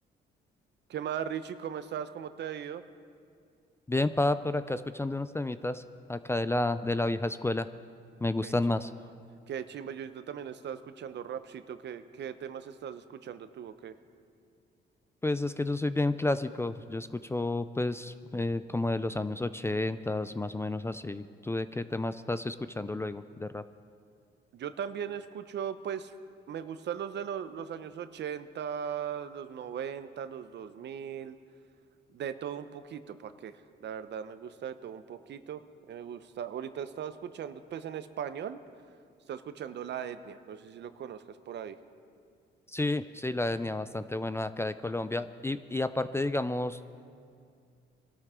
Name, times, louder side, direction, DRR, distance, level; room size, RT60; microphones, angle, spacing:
voice 1, 0.9-2.8 8.4-8.8 9.5-13.9 24.5-26.1 26.5-31.4 32.1-35.6 35.9-38.6 39.3-41.8, right 8 dB, 60° right, 11 dB, 0.8 m, -38 dB
voice 2, 3.9-5.8 6.1-7.7 8.2-8.9 15.2-23.6 42.7-46.8, left 2 dB, 15° left, 12 dB, 0.4 m, -31 dB
23.0 x 12.5 x 3.7 m, 2.3 s
cardioid pair, 90°, 20 cm